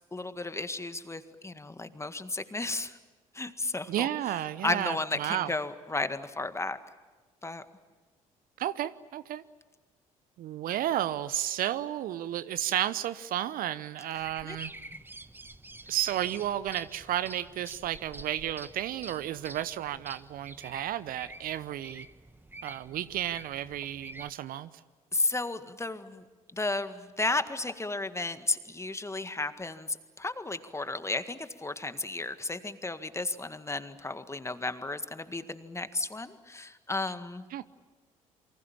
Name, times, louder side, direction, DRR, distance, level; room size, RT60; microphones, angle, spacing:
voice 1, 0.1-3.0 3.3-4.1 4.6-6.8 7.4-7.6 14.4-14.6 14.9-15.0 25.1-26.2 26.5-37.5, left 2 dB, 15° left, 10 dB, 1.8 m, -33 dB
voice 2, 3.9-5.5 8.6-9.4 10.4-14.7 15.9-22.1 22.6-24.7 37.5-37.7, right 12 dB, 55° right, 16 dB, 0.9 m, -32 dB
sound 1, 14.1-24.3, right 2 dB, 10° right, 1.4 m, -48 dB
28.0 x 24.5 x 7.3 m, 1.3 s
figure-of-eight pair, 50°, 17 cm